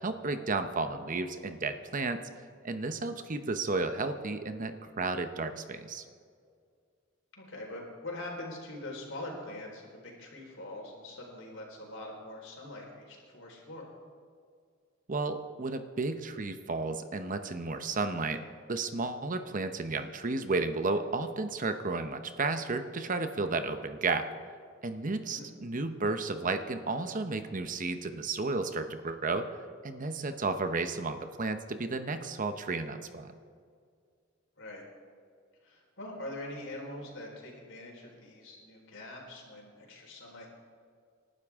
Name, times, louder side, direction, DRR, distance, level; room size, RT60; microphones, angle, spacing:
voice 1, 0.0-2.2 2.6-6.0 15.1-18.4 18.7-24.3 24.8-29.5 29.8-33.3, right 3 dB, 40° right, 9 dB, 0.9 m, -33 dB
voice 2, 7.4-13.9 25.2-25.5 34.6-34.8 35.6-40.5, left 1 dB, 65° left, -1 dB, 4.4 m, -43 dB
28.0 x 12.0 x 3.7 m, 2.2 s
head